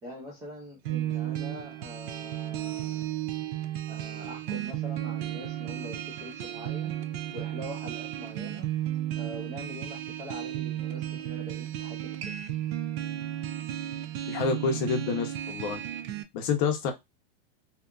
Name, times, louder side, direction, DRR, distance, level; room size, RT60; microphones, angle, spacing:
voice 1, 0.0-3.1 3.9-6.9 7.3-8.7 9.2-12.4, equal, 10° right, 0.4 m, -43 dB
sound 1, 0.9-16.2, right 12 dB, 75° right, 0.6 m, -34 dB
voice 2, 14.3-15.8 16.3-16.9, left 5 dB, 35° left, 0.6 m, -28 dB
2.8 x 2.3 x 2.2 m
supercardioid pair, 160°, 31 cm